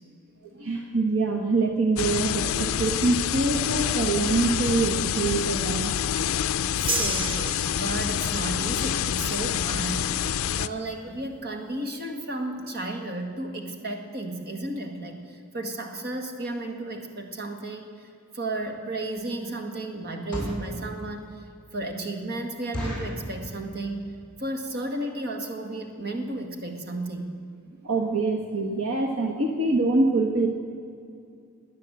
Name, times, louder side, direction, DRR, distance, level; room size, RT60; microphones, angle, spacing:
voice 1, 0.6-5.9 27.8-30.5, right 3 dB, 65° right, 3 dB, 1.2 m, -24 dB
sound 1, 2.0-10.7, left 9 dB, 70° left, 0.4 m, -27 dB
voice 2, 6.8-10.1 10.6-18.1 18.3-21.4 21.7-24.1 24.4-27.4, right 2 dB, 45° right, 4 dB, 1.9 m, -33 dB
sound 2, 6.9-8.4, right 3 dB, 25° right, 1.2 m, -31 dB
sound 3, 18.5-18.7 19.2-19.4 20.1-20.7 21.3-21.4 21.7-21.8 22.1-22.2 22.7-23.2 23.8-24.1 24.4-24.5 24.7-25.0 25.5-25.6 25.8-26.0 26.4-26.5 26.7-26.8, equal, 5° left, 4.4 m, -34 dB
18.0 x 10.0 x 8.0 m, 2.5 s
head